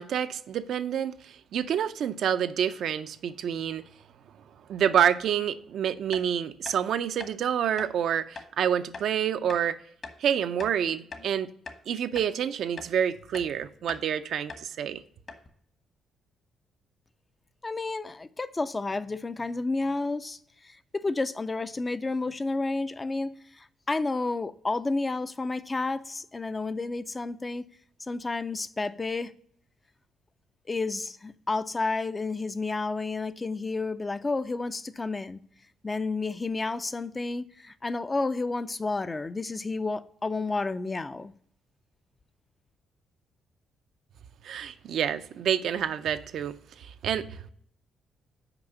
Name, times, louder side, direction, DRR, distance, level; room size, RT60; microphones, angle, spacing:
voice 1, 0.0-3.8 4.7-9.8 10.2-11.5 11.9-15.0 44.4-47.5, right 9 dB, 70° right, 0.4 m, -28 dB
sound 1, 6.1-6.3 6.6-6.8 7.2-7.3 7.8-7.9 8.3-8.5 8.9-9.1 9.5-9.6 10.0-10.2 10.6-11.3 11.6-11.8 12.1-12.3 12.8-12.9 13.3-13.5 13.9-14.1 14.5-14.7 14.9-15.0 15.3-15.5, left 4 dB, 45° left, 1.2 m, -42 dB
voice 2, 17.6-20.4 20.6-27.7 28.1-29.3 30.7-35.4 35.8-41.3, left 3 dB, 25° left, 0.4 m, -31 dB
5.9 x 4.8 x 6.4 m
cardioid pair, 90°, 0 cm